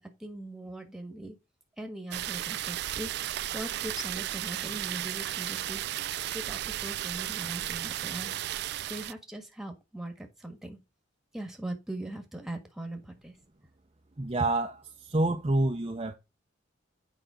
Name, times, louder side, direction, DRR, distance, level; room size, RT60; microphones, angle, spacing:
voice 1, 0.0-1.3 1.8-5.8 6.3-8.3 8.9-10.8 11.3-13.4, right 1 dB, ahead, 1.5 m, -40 dB
sound 1, 2.1-9.1, right 13 dB, 60° right, 0.3 m, -34 dB
voice 2, 14.2-16.1, right 2 dB, 30° right, 0.7 m, -28 dB
8.0 x 5.2 x 5.0 m
head